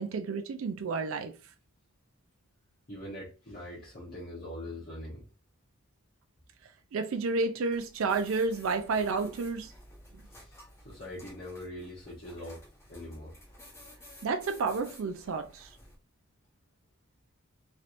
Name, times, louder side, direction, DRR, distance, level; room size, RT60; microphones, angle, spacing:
voice 1, 0.0-1.3 6.9-9.7 14.2-15.7, right 4 dB, 70° right, 0.4 m, -30 dB
voice 2, 2.9-5.3 10.4-12.6 12.9-13.3, left 1 dB, 45° left, 1.0 m, -42 dB
sound 1, 7.7-16.0, left 1 dB, 15° left, 0.9 m, -53 dB
3.2 x 2.8 x 2.5 m
head